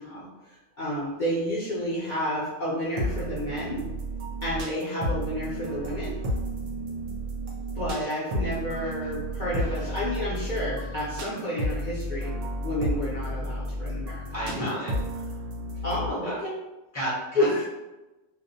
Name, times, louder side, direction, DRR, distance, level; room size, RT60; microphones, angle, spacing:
voice 1, 0.0-3.8 4.4-6.2 7.7-12.3 12.6-14.4 15.8-16.5 17.4-17.6, equal, 50° left, -9 dB, 0.6 m, -30 dB
sound 1, 3.0-16.1, equal, 75° right, 0.9 m, -32 dB
voice 2, 9.6-9.9 14.3-15.4 15.7-15.8 16.2-16.3 16.9-17.7, equal, 15° right, -9 dB, 0.6 m, -34 dB
2.4 x 2.0 x 2.6 m, 1.0 s
omnidirectional pair, 1.3 m